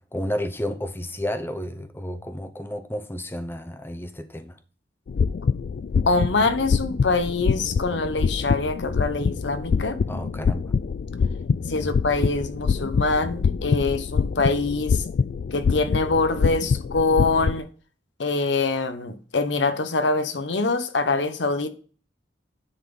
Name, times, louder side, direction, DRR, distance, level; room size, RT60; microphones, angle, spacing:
voice 1, 0.1-4.6 10.1-10.7 11.7-11.8, equal, 10° left, 0.7 m, -31 dB
sound 1, 5.1-17.6, left 5 dB, 55° left, 0.3 m, -25 dB
voice 2, 6.1-10.0 11.7-15.0 15.5-17.7 18.2-21.7, left 3 dB, 80° left, 0.9 m, -24 dB
10.0 x 4.1 x 5.3 m
head